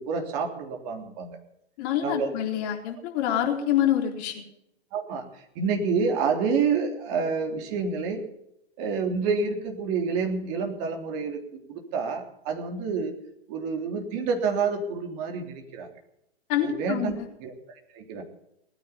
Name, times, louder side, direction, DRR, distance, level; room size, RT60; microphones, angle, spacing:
voice 1, 0.0-1.4 2.0-2.3 4.9-8.2 8.8-11.4 11.7-13.1 13.5-15.9 16.6-17.1 17.4-18.2, right 5 dB, 40° right, 3 dB, 3.5 m, -28 dB
voice 2, 1.8-4.4 16.5-17.1, left 10 dB, 40° left, 1 dB, 4.0 m, -26 dB
19.5 x 9.7 x 7.1 m, 0.79 s
hypercardioid pair, 130°, 33 cm